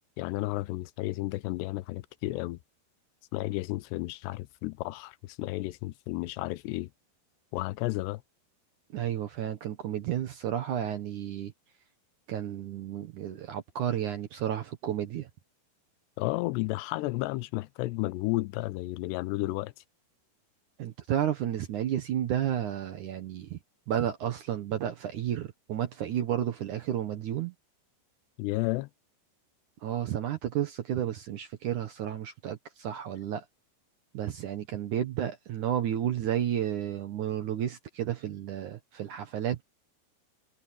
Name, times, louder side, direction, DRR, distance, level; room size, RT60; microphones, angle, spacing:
voice 1, 0.2-2.6 3.3-6.9 7.5-8.2 16.2-19.7 28.4-28.9, left 20 dB, 90° left, 2.8 m, -32 dB
voice 2, 8.9-11.5 12.3-15.3 20.8-23.6 23.9-27.5 29.8-33.5 34.1-39.6, right 10 dB, 65° right, 2.0 m, -32 dB
omnidirectional pair, 4.8 m